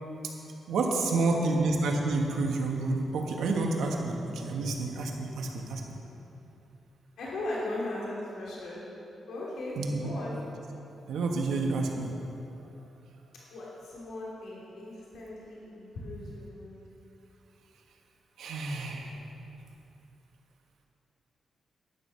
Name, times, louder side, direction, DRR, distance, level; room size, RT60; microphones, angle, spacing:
voice 1, 0.7-5.8 9.8-10.1 11.1-12.2 18.4-19.2, right 3 dB, 85° right, 1 dB, 1.5 m, -29 dB
voice 2, 7.2-8.8 9.3-10.4 13.5-16.8, left 1 dB, 85° left, -6 dB, 3.0 m, -38 dB
12.5 x 10.0 x 5.7 m, 2.9 s
wide cardioid pair, 150°, 0 cm